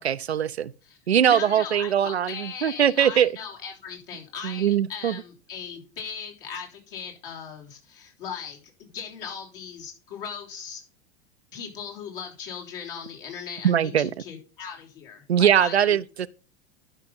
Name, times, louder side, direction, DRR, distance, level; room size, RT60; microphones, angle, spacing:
voice 1, 0.0-0.7 1.1-3.3 4.4-5.2 13.6-14.1 15.3-16.3, right 9 dB, 85° right, 0.5 m, -21 dB
voice 2, 1.3-10.8 11.5-16.0, left 7 dB, 60° left, 3.3 m, -38 dB
11.5 x 5.7 x 3.9 m
figure-of-eight pair, 90°, 32 cm